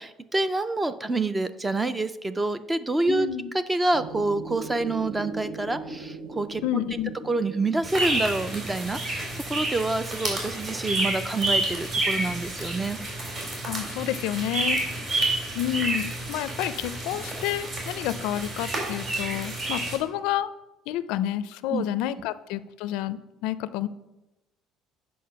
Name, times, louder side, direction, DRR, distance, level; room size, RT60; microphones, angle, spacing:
voice 1, 0.0-3.3 3.5-6.8 7.2-13.0 21.7-21.8, right 2 dB, 10° right, 13 dB, 0.4 m, -27 dB
voice 2, 3.1-3.5 6.6-7.1 13.6-14.8 15.5-20.5 20.9-23.9, left 12 dB, 85° left, 15 dB, 0.4 m, -29 dB
sound 1, 3.9-9.4, right 4 dB, 70° right, 0.8 m, -40 dB
sound 2, 7.8-20.0, right 2 dB, 35° right, 2.7 m, -29 dB
8.5 x 5.4 x 5.7 m, 0.99 s
cardioid pair, 170°, 0 cm